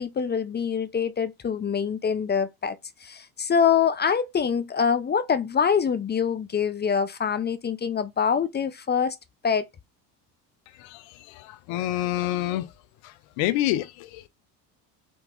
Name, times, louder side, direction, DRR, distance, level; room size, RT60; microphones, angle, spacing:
voice 1, 0.0-9.2 9.4-9.7, left 7 dB, 25° left, 0.4 m, -25 dB
voice 2, 10.8-12.7 13.0-14.3, left 14 dB, 70° left, 0.7 m, -28 dB
3.5 x 3.0 x 3.5 m
hypercardioid pair, 70°, 48 cm